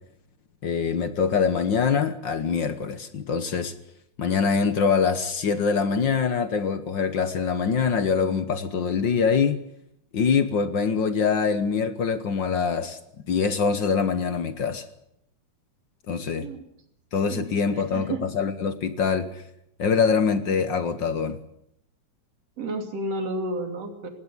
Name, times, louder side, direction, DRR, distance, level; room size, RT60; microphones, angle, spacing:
voice 1, 0.6-3.7 4.2-9.6 10.1-13.0 13.3-14.8 16.1-16.5 17.1-19.4 19.8-21.4, left 6 dB, 55° left, 1.3 m, -24 dB
voice 2, 17.3-18.3 22.6-24.1, right 1 dB, 60° right, 3.9 m, -32 dB
19.5 x 17.5 x 9.8 m
omnidirectional pair, 3.3 m